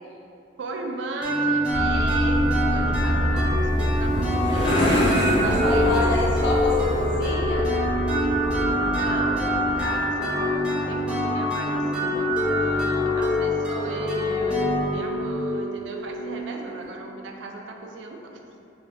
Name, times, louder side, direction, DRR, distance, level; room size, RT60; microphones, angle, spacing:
voice 1, 0.6-5.4 5.7-6.4 8.5-18.4, right 2 dB, 75° right, 2 dB, 0.3 m, -36 dB
sound 1, 1.2-16.8, left 1 dB, 5° right, 0.4 m, -25 dB
sound 2, 1.7-9.9, equal, 40° right, 0.7 m, -27 dB
sound 3, 3.6-7.2, equal, 30° left, 0.8 m, -27 dB
voice 2, 5.4-7.7, left 1 dB, 75° left, -2 dB, 0.5 m, -28 dB
2.7 x 2.3 x 3.3 m, 2.6 s
head